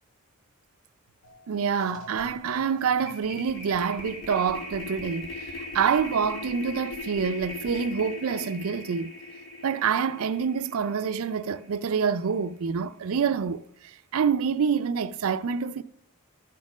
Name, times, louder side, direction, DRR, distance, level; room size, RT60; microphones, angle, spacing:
sound 1, 1.2-1.4 1.7-12.0, left 2 dB, 65° left, 2.7 m, -40 dB
voice 1, 1.5-5.4 5.7-9.1 9.6-13.6 14.1-15.8, right 6 dB, 85° right, 0.4 m, -26 dB
12.5 x 4.4 x 6.0 m
head